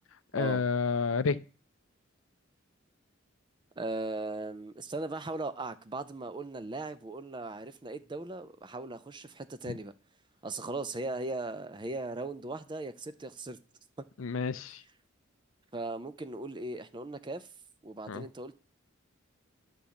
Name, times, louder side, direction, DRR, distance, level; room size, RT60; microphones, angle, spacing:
voice 1, 0.3-1.4 14.2-14.8 18.1-18.2, left 5 dB, 75° left, 0.5 m, -29 dB
voice 2, 3.8-9.9 10.4-13.6 15.7-17.5 17.8-18.5, right 2 dB, 20° right, 0.5 m, -38 dB
10.0 x 3.8 x 7.0 m
head